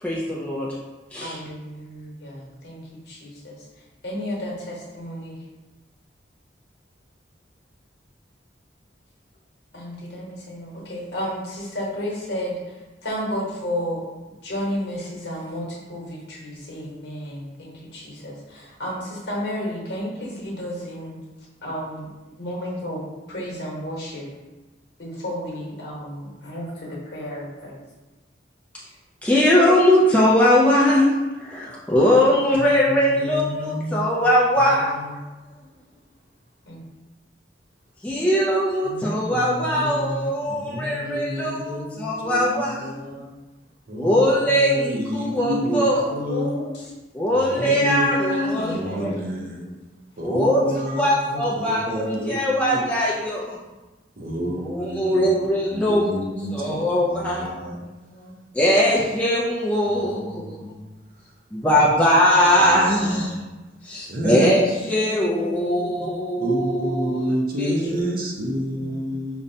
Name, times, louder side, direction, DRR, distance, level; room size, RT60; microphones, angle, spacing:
voice 1, 0.0-0.7 1.1-1.4 29.2-31.1 31.4-35.1 38.0-42.9 43.9-46.1 47.1-49.1 50.2-53.6 54.6-56.1 56.5-57.5 58.5-60.6 61.5-63.4 63.8-67.8, equal, 5° left, -6 dB, 0.3 m, -21 dB
voice 2, 1.2-3.6 4.0-5.4 9.7-14.1 14.4-21.2 21.6-22.1 22.4-24.3 25.0-27.8 36.7-36.8 38.2-38.4 41.9-43.1 44.0-44.8 46.0-46.9 47.6-49.4 50.3-50.6 51.4-52.7 54.4-54.5 56.5-56.6 56.9-57.0 58.1-58.4 61.8-62.0 62.4-62.6 64.3-64.6 65.0-66.0 67.8-67.9 68.8-69.1, equal, 65° left, -4 dB, 1.0 m, -32 dB
voice 3, 32.6-34.1 34.6-35.1 38.8-43.3 43.9-46.5 47.3-48.1 48.7-49.6 50.2-52.3 52.7-52.8 54.2-55.2 55.6-56.8 57.0-57.8 59.9-60.8 62.6-63.3 64.1-64.5 66.4-69.4, equal, 50° right, 0 dB, 0.5 m, -30 dB
5.1 x 2.1 x 2.6 m, 1.1 s
head